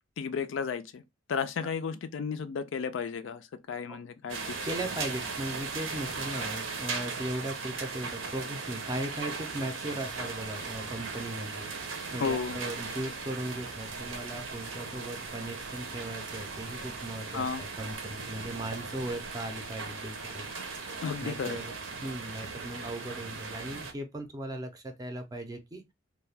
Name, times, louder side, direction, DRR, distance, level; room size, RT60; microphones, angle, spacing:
voice 1, 0.2-1.0 1.3-4.6 12.2-12.6 17.3-17.6 21.0-21.6, left 6 dB, 65° left, 0.4 m, -33 dB
sound 1, 4.3-23.9, right 4 dB, 75° right, 0.6 m, -38 dB
voice 2, 4.6-20.5 21.2-25.9, right 1 dB, 20° right, 0.5 m, -38 dB
2.3 x 2.2 x 3.2 m
head